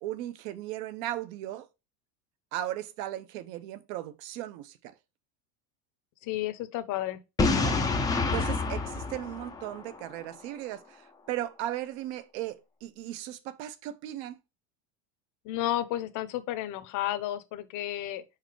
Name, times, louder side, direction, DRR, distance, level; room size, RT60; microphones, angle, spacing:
voice 1, 0.0-1.7 2.5-4.9 7.5-7.8 8.3-14.4, right 13 dB, 65° right, 0.9 m, -37 dB
voice 2, 6.2-7.2 15.4-18.2, left 13 dB, 45° left, 0.8 m, -32 dB
Boom, 7.4-10.2, left 3 dB, 10° left, 0.4 m, -28 dB
4.9 x 4.5 x 4.6 m
cardioid pair, 155°, 43 cm